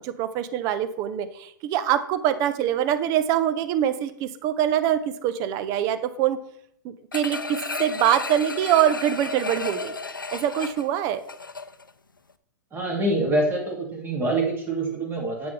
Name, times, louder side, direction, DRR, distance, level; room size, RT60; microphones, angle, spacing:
voice 1, 0.0-6.4 6.8-10.0 10.3-11.2, right 10 dB, 35° right, 12 dB, 0.7 m, -24 dB
sound 1, 7.1-11.9 12.3-12.4, left 4 dB, 90° left, 0.5 m, -33 dB
voice 2, 12.7-15.5, right 2 dB, 20° right, 0 dB, 2.4 m, -25 dB
8.0 x 6.7 x 3.3 m, 0.68 s
figure-of-eight pair, 105°, 11 cm